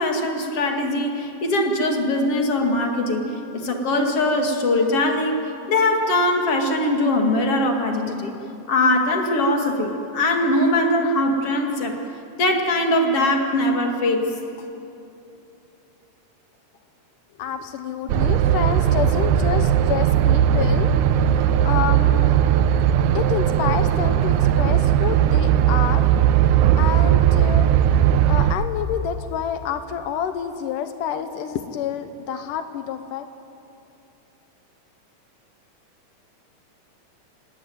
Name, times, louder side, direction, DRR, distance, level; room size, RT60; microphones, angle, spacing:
voice 1, 0.0-3.3 3.5-5.4 5.7-8.3 8.7-12.0 12.4-14.3, left 1 dB, 50° left, 3 dB, 2.9 m, -21 dB
voice 2, 17.4-20.9 21.6-22.4 23.1-26.1 26.8-27.7 28.3-33.3, left 8 dB, 80° left, 9 dB, 2.5 m, -28 dB
sound 1, 18.1-28.5, right 10 dB, 75° right, 2.2 m, -18 dB
26.5 x 18.5 x 9.3 m, 2.8 s
omnidirectional pair, 3.7 m